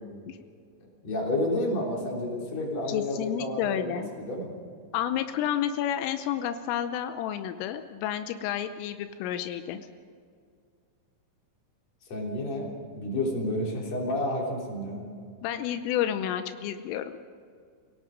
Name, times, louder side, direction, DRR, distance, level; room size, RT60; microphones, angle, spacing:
voice 1, 1.0-4.5 12.1-15.0, left 1 dB, 35° left, -1 dB, 4.2 m, -30 dB
voice 2, 2.9-4.1 4.9-9.9 15.4-17.1, left 10 dB, 85° left, 9 dB, 3.4 m, -30 dB
28.5 x 17.5 x 5.2 m, 2.2 s
omnidirectional pair, 5.7 m